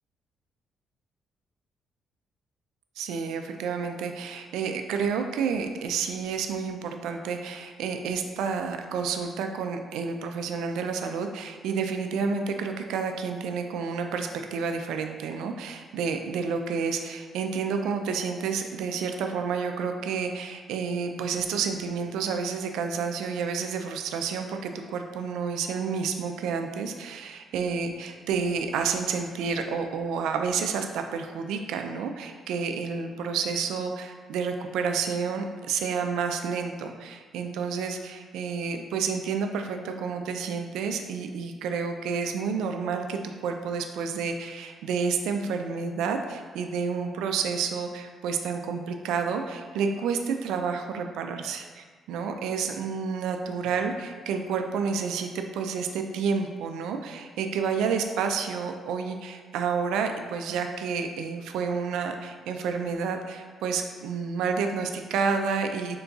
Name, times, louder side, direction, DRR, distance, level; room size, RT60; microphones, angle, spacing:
voice 1, 3.0-66.0, right 5 dB, 90° right, 5 dB, 0.3 m, -30 dB
3.7 x 2.3 x 3.9 m, 1.5 s
cardioid pair, 90°, 0 cm